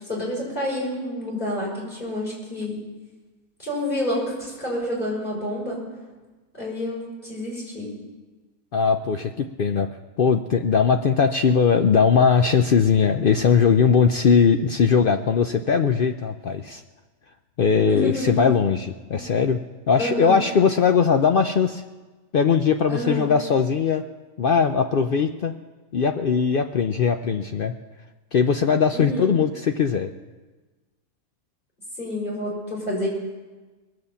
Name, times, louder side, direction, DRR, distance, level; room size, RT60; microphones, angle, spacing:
voice 1, 0.1-2.8 3.6-5.8 6.5-7.9 17.9-18.5 19.1-19.2 20.0-20.4 22.9-23.3 28.9-29.3 32.0-33.1, left 1 dB, 35° left, -5 dB, 6.2 m, -28 dB
voice 2, 8.7-9.9 10.2-16.8 17.6-19.6 19.9-21.8 22.3-24.0 24.4-25.5 25.9-27.7 28.3-30.1, left 6 dB, 65° left, 6 dB, 0.5 m, -20 dB
21.0 x 7.9 x 7.0 m, 1.3 s
omnidirectional pair, 1.5 m